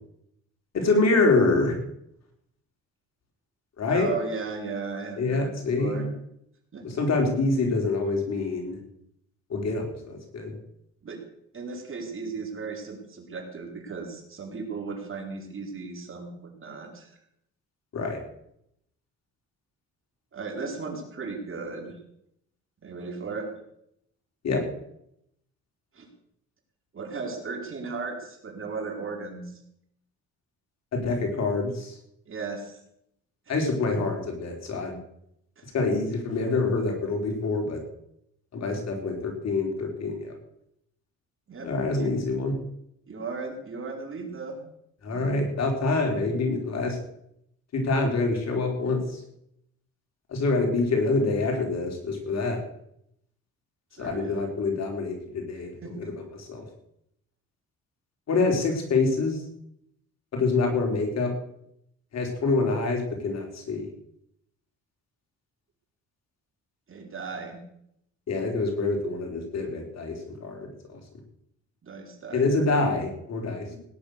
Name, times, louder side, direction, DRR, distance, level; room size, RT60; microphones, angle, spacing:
voice 1, 0.7-1.8 3.8-4.1 5.2-6.0 6.8-8.8 9.5-10.6 17.9-18.2 24.4-24.6 30.9-32.0 33.5-35.0 35.7-37.8 38.5-40.3 41.6-42.5 45.0-47.0 47.7-49.2 50.3-52.6 54.0-55.7 56.0-56.6 58.3-59.4 60.3-61.3 62.1-63.9 68.3-71.0 72.3-73.7, left 3 dB, 60° left, 2 dB, 4.9 m, -26 dB
voice 2, 3.9-5.5 5.8-6.0 6.7-6.8 11.0-11.2 11.5-17.2 20.3-21.9 22.8-23.5 25.9-26.1 26.9-29.6 32.3-32.8 33.5-33.6 33.9-34.0 35.6-35.7 41.5-42.1 43.1-44.6 45.1-45.4 53.9-54.4 55.8-56.1 66.9-67.6 71.8-72.7 73.6-73.8, right 4 dB, 45° right, 2 dB, 4.6 m, -36 dB
18.0 x 10.5 x 6.7 m, 0.75 s
cardioid pair, 90°, 30 cm